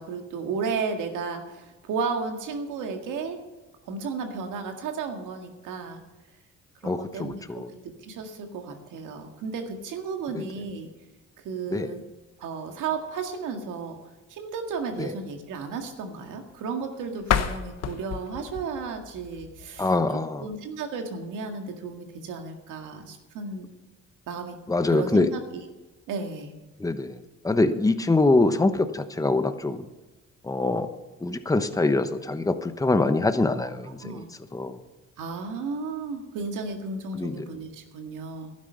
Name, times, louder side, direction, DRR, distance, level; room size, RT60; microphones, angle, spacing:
voice 1, 0.0-3.4 3.9-6.0 6.8-10.9 11.4-12.0 12.4-14.0 14.3-23.7 24.3-24.6 24.9-25.4 26.1-26.5 33.6-33.7 34.0-34.3 35.2-38.5, right 5 dB, 90° right, 4 dB, 2.0 m, -33 dB
voice 2, 6.8-7.7 10.3-10.4 11.7-11.9 15.0-15.1 19.8-20.5 24.7-25.3 26.8-29.9 30.4-34.3 34.5-34.8 37.1-37.5, left 2 dB, 10° left, 9 dB, 1.0 m, -24 dB
sound 1, 17.2-20.1, left 8 dB, 55° left, 1.1 m, -30 dB
12.0 x 9.9 x 6.8 m, 1.2 s
cardioid pair, 90°, 30 cm